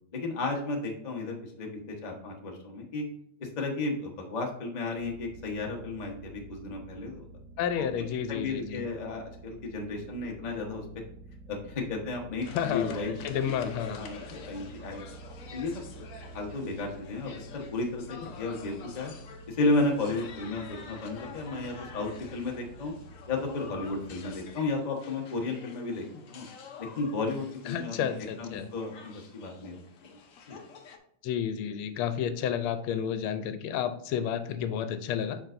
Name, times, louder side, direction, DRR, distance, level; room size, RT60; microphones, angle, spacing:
voice 1, 0.1-3.0 3.4-7.2 8.3-10.8 11.5-13.2 13.8-15.0 15.5-16.1 16.3-19.1 19.5-22.9 23.3-26.5 26.8-28.1 28.4-30.2 30.5-30.6, left 3 dB, 30° left, 0 dB, 0.8 m, -33 dB
sound 1, 5.0-24.6, right 3 dB, 90° right, 0.8 m, -49 dB
voice 2, 7.6-8.9 12.5-14.0 27.7-28.7 31.2-35.4, left 8 dB, 85° left, 10 dB, 1.5 m, -31 dB
sound 2, 12.4-31.0, left 6 dB, 65° left, 0.8 m, -48 dB
7.3 x 5.4 x 2.6 m, 0.73 s
omnidirectional pair, 2.3 m